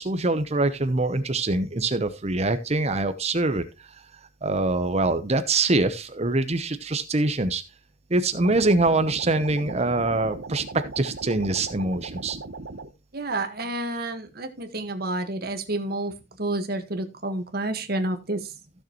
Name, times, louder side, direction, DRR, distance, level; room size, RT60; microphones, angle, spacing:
voice 1, 0.0-4.0 4.4-7.6 8.1-12.4, right 2 dB, 35° right, 11 dB, 0.8 m, -24 dB
sound 1, 8.4-12.9, right 3 dB, 80° right, 1.0 m, -38 dB
voice 2, 13.1-18.5, right 2 dB, 55° right, 7 dB, 1.6 m, -30 dB
15.0 x 6.6 x 3.0 m, 0.25 s
head